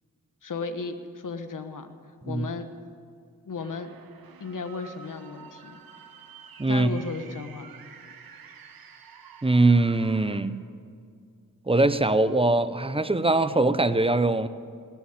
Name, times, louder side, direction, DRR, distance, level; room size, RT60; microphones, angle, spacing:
voice 1, 0.4-1.9 2.3-2.7 3.4-3.9 4.4-5.8 6.7-7.7, left 4 dB, 65° left, 9 dB, 1.2 m, -35 dB
sound 1, 3.6-10.4, right 7 dB, 90° right, 1.0 m, -49 dB
voice 2, 6.6-6.9 9.4-10.5 11.7-14.5, right 2 dB, 15° right, 13 dB, 0.8 m, -22 dB
19.0 x 7.2 x 9.3 m, 2.2 s
cardioid pair, 45°, 35 cm